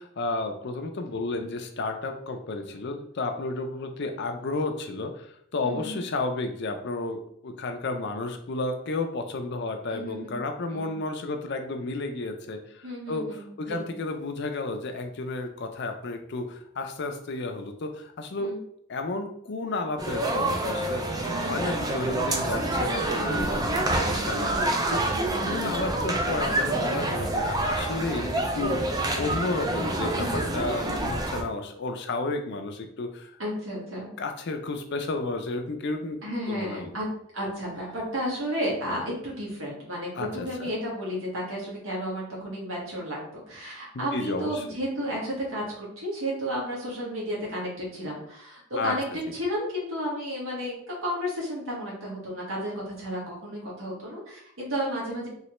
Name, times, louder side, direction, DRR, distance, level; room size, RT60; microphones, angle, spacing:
voice 1, 0.0-18.5 18.9-25.1 25.4-28.8 29.2-30.3 30.5-33.3 34.2-36.2 36.5-37.0 40.1-40.7 44.1-44.6 48.8-49.0, left 3 dB, 55° left, 6 dB, 0.5 m, -32 dB
voice 2, 5.6-6.0 9.9-10.4 10.7-10.9 12.8-13.9 18.4-18.6 21.2-21.6 23.9-24.2 25.1-25.3 30.2-30.3 33.4-34.1 36.2-37.1 37.3-49.1 49.3-55.3, equal, 75° right, -4 dB, 1.5 m, -32 dB
sound 1, 20.0-31.4, right 2 dB, 20° right, 0.4 m, -27 dB
3.2 x 3.1 x 3.0 m, 0.68 s
head